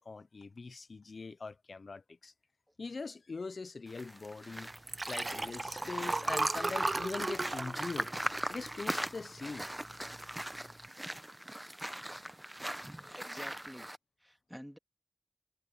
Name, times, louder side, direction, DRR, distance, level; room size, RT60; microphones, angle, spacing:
voice 1, 0.0-2.3 2.8-4.7 5.0-8.1 8.5-9.7 13.0-13.2, left 4 dB, 90° left, 0.6 m, -42 dB
sound 1, 3.9-14.0, right 1 dB, 15° right, 0.8 m, -41 dB
Liquid, 4.8-9.4 9.9-10.2 10.4-10.5, right 2 dB, 55° right, 0.6 m, -35 dB
voice 2, 11.8-12.4 13.1-13.9 14.2-14.8, equal, ahead, 2.0 m, -50 dB
cardioid pair, 40°, 0 cm